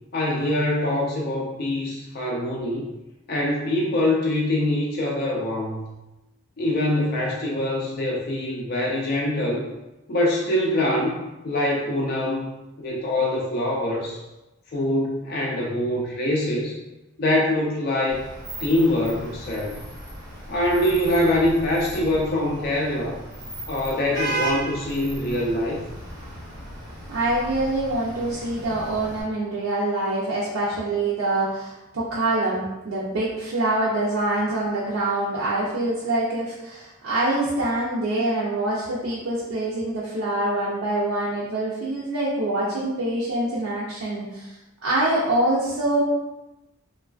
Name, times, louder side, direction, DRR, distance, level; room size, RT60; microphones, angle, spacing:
voice 1, 0.1-2.9 3.3-5.9 6.6-9.6 10.1-11.2 11.4-12.5 12.8-14.2 14.7-16.7 17.2-18.2 18.6-19.8 20.5-23.1 23.7-25.8, left 1 dB, 45° left, -2 dB, 0.3 m, -24 dB
Vehicle horn car horn honking / Traffic noise roadway noise, 18.1-29.2, right 2 dB, 15° right, 0.6 m, -35 dB
voice 2, 27.1-44.5 44.8-46.0, right 2 dB, 75° right, -7 dB, 0.5 m, -25 dB
3.1 x 2.3 x 2.3 m, 1.0 s
head